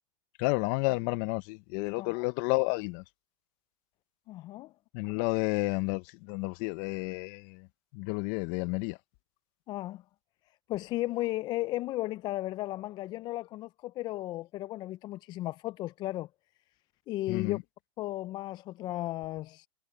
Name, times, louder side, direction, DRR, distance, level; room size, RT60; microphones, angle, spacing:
voice 1, 0.4-3.0 4.9-7.7 7.9-9.0 17.3-17.6, left 27 dB, 40° left, 0.9 m, -31 dB
voice 2, 4.3-4.7 9.7-10.0 10.7-16.3 17.1-17.6 18.0-19.7, left 17 dB, 25° left, 0.4 m, -35 dB
hypercardioid pair, 130°, 18 cm